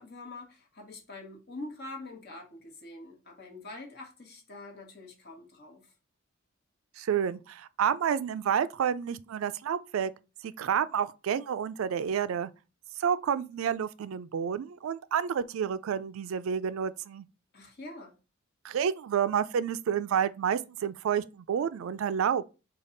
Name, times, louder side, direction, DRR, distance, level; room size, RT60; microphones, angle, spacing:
voice 1, 0.0-5.9 17.5-18.1, left 2 dB, 50° left, 1.2 m, -45 dB
voice 2, 7.0-10.1 10.4-12.5 13.0-17.3 18.6-22.4, right 8 dB, 80° right, 0.3 m, -29 dB
5.1 x 2.3 x 3.8 m
head